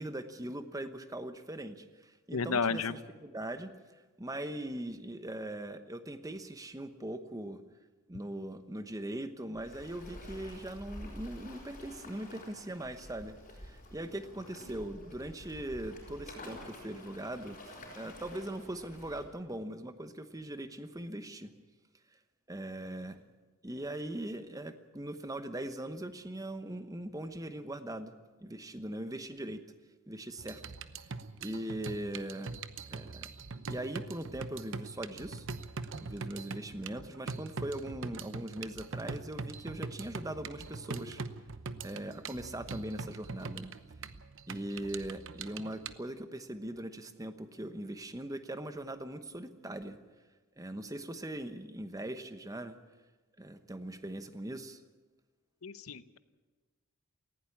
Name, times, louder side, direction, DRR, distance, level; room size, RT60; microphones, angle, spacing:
voice 1, 0.0-3.7 4.2-7.6 8.1-21.5 22.5-23.2 23.6-28.1 28.4-29.6 30.1-30.6 31.4-32.5 32.9-33.3 33.7-35.5 36.0-41.2 41.8-43.7 44.5-50.0 50.6-52.8 53.4-54.8, right 1 dB, 15° right, 9 dB, 1.0 m, -40 dB
voice 2, 2.3-2.9 55.6-56.2, left 5 dB, 70° left, 14 dB, 0.8 m, -32 dB
Waves surf, 9.5-19.3, left 1 dB, 35° left, 5.9 m, -49 dB
sound 1, 30.4-45.9, right 4 dB, 60° right, 0.9 m, -42 dB
19.0 x 16.0 x 8.6 m, 1.3 s
head